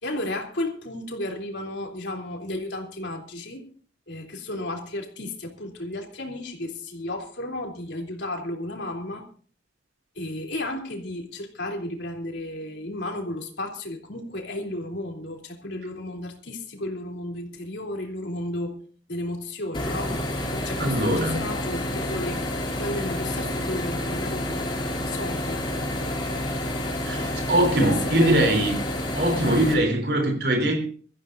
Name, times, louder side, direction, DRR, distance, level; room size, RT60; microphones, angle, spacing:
voice 1, 0.0-3.6 4.1-9.2 10.1-18.8 19.1-20.2 20.5-22.4 22.8-24.6 25.1-25.6 27.6-28.6, left 1 dB, 75° left, 3.3 m, -33 dB
sound 1, 19.7-29.7, left 1 dB, 25° left, 3.0 m, -29 dB
voice 2, 20.8-21.4 27.0-28.7 29.1-30.8, right 1 dB, 60° right, 3.6 m, -22 dB
24.0 x 14.5 x 2.6 m
head